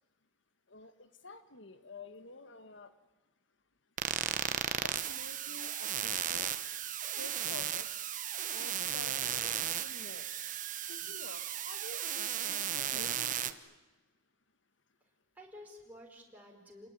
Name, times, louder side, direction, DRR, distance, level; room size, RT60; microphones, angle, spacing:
voice 1, 0.7-2.9 4.8-6.5 7.2-7.9 8.5-10.3 10.9-13.6, left 3 dB, 65° left, 10 dB, 1.7 m, -50 dB
sound 1, 4.0-13.5, right 10 dB, 40° right, 1.1 m, -35 dB
voice 2, 15.0-16.9, left 1 dB, 10° right, -1 dB, 4.5 m, -53 dB
28.5 x 20.5 x 9.9 m, 1.2 s
head